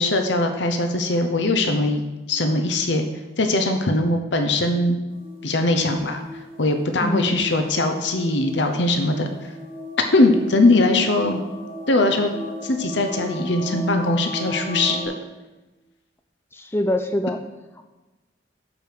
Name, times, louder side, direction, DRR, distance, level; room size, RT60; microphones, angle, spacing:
voice 1, 0.0-3.0 3.4-5.0 5.4-6.2 6.6-9.3 10.1-11.4 11.9-12.3 12.6-15.0, left 2 dB, 70° left, 5 dB, 0.9 m, -21 dB
sound 1, 5.1-15.0, left 1 dB, 45° left, 3.9 m, -36 dB
voice 2, 7.0-7.4 16.5-17.4, left 1 dB, 15° left, 6 dB, 0.4 m, -24 dB
12.0 x 5.2 x 6.6 m, 1.1 s
head